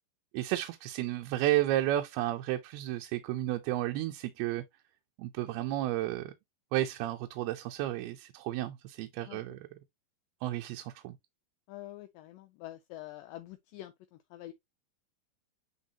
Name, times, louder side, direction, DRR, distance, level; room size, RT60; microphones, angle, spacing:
voice 1, 0.3-4.6 5.2-6.3 6.7-9.6 10.4-11.1, right 14 dB, 90° right, 2.6 m, -32 dB
voice 2, 11.7-14.5, left 15 dB, 80° left, 2.0 m, -46 dB
9.5 x 3.5 x 2.8 m
omnidirectional pair, 4.4 m